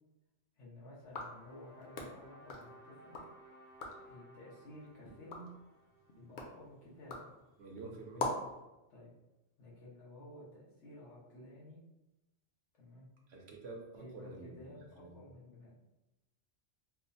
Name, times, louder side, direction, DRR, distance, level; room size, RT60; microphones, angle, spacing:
voice 1, 0.6-3.2 4.1-5.5 6.1-7.2 8.9-9.1 9.6-11.8 12.7-13.1 14.0-15.7, left 1 dB, 90° left, -5 dB, 1.4 m, -53 dB
sound 1, 1.0-3.3 3.7-4.1 4.6-8.6, left 2 dB, 55° left, 0.6 m, -44 dB
sound 2, 1.0-7.2, right 1 dB, 15° left, 0.4 m, -60 dB
voice 2, 7.6-8.3 13.3-15.1, right 3 dB, 70° right, 0 dB, 0.9 m, -48 dB
4.6 x 2.0 x 2.6 m, 0.99 s
omnidirectional pair, 1.2 m